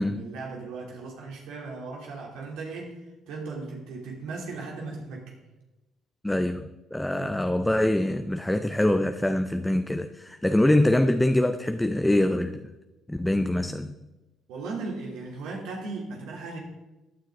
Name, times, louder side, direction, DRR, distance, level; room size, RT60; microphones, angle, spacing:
voice 1, 0.0-5.3 7.1-7.7 14.5-16.6, right 3 dB, 85° right, -1 dB, 3.2 m, -37 dB
voice 2, 6.2-12.7 13.1-13.9, left 1 dB, 5° left, 8 dB, 0.6 m, -24 dB
16.0 x 9.5 x 3.8 m, 1.1 s
cardioid pair, 100°, 0 cm